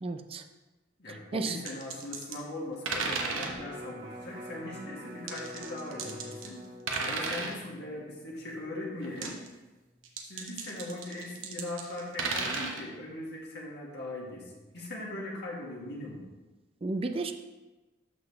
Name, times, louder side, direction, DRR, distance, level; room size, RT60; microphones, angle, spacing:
voice 1, 0.0-0.4 1.3-1.6 16.8-17.3, right 3 dB, 30° right, 7 dB, 0.4 m, -32 dB
voice 2, 1.0-6.6 7.0-9.4 10.3-16.3, left 1 dB, 60° left, -3 dB, 1.8 m, -40 dB
sound 1, 1.4-2.4 2.9-3.6 5.3-6.6 6.9-7.6 9.0-9.5 10.0-12.8, right 4 dB, 85° right, 1.0 m, -34 dB
Electric guitar, 3.4-9.6 10.0-10.1, equal, 50° right, 2.0 m, -46 dB
12.0 x 4.1 x 3.3 m, 1.1 s
head